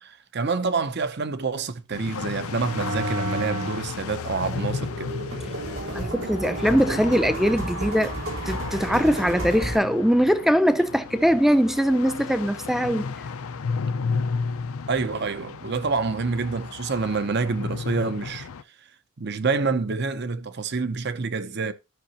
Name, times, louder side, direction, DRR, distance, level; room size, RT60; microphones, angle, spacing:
voice 1, 0.0-5.1 14.9-18.5 19.2-21.7, right 4 dB, 50° right, 0.7 m, -27 dB
sound 1, 1.9-18.6, left 5 dB, 85° left, 0.5 m, -34 dB
sound 2, 2.5-3.9 4.3-9.8, right 1 dB, 85° right, 3.9 m, -31 dB
voice 2, 5.9-8.1 8.5-13.1, equal, ahead, 0.4 m, -21 dB
12.0 x 5.8 x 2.9 m
head